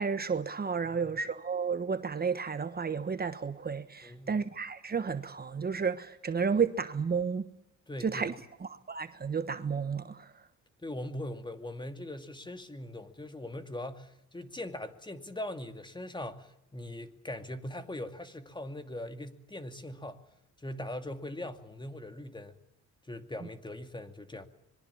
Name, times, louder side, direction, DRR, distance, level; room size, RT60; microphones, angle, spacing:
voice 1, 0.0-7.5 8.0-8.3 8.6-10.3, right 6 dB, 30° right, 1.2 m, -32 dB
voice 2, 4.0-4.4 7.9-8.3 10.8-20.2 20.6-22.5 23.1-24.5, left 1 dB, 15° left, 2.4 m, -41 dB
26.0 x 22.5 x 7.2 m
cardioid pair, 90°, 30 cm